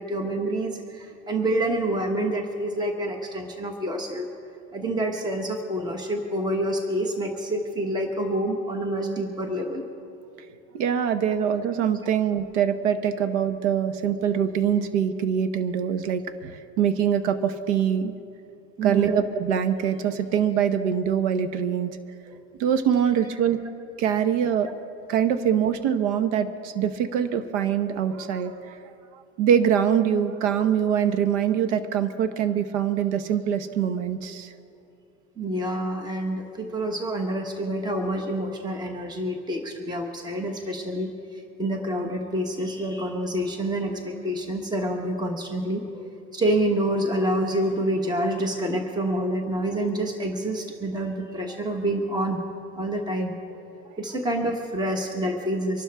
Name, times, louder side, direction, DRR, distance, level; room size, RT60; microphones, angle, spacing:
voice 1, 0.0-4.3 4.7-9.8 18.8-19.2 35.4-52.4 52.8-53.6 54.0-55.8, right 1 dB, 10° right, 3 dB, 1.3 m, -27 dB
voice 2, 10.7-18.1 18.8-21.9 22.6-23.6 24.0-24.7 25.1-28.8 29.4-34.5, right 8 dB, 75° right, 10 dB, 1.0 m, -24 dB
25.0 x 12.0 x 3.5 m, 2.5 s
supercardioid pair, 135°, 35 cm